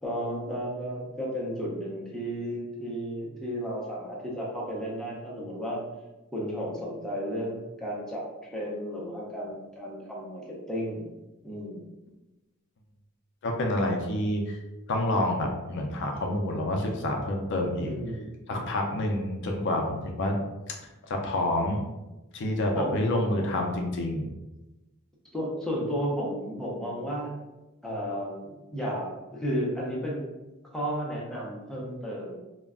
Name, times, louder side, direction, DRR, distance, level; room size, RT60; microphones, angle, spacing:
voice 1, 0.0-5.8 6.3-8.3 8.5-11.1 11.4-11.9 17.8-18.3 22.7-23.0 25.3-27.3 27.8-30.3 30.6-32.4, equal, 5° left, -4 dB, 0.5 m, -33 dB
voice 2, 13.4-14.6 14.9-17.9 18.5-20.4 20.7-20.8 21.0-21.8 22.3-24.3, left 1 dB, 55° left, 2 dB, 0.4 m, -28 dB
2.3 x 2.1 x 3.5 m, 1.0 s
head